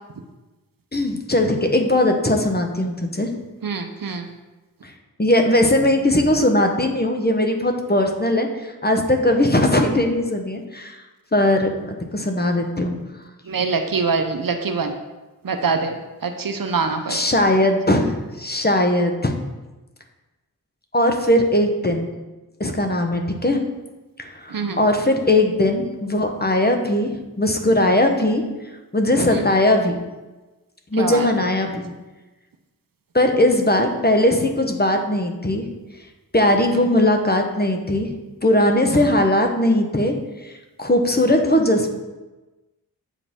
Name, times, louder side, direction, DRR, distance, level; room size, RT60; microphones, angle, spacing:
voice 1, 0.9-3.3 4.8-4.9 5.2-11.0 11.3-13.0 17.1-19.3 20.9-22.1 22.6-23.6 24.2-28.4 28.9-30.0 30.9-31.9 33.1-35.7 36.3-38.1 38.4-40.1 40.4-40.5 40.8-41.9, left 1 dB, 25° left, 4 dB, 1.0 m, -19 dB
voice 2, 3.6-4.2 13.5-14.9 15.4-15.9 16.2-17.2 24.5-24.8 29.3-29.4 31.0-31.3, right 4 dB, 65° right, 6 dB, 0.7 m, -24 dB
7.9 x 4.9 x 3.6 m, 1.1 s
wide cardioid pair, 40°, 37 cm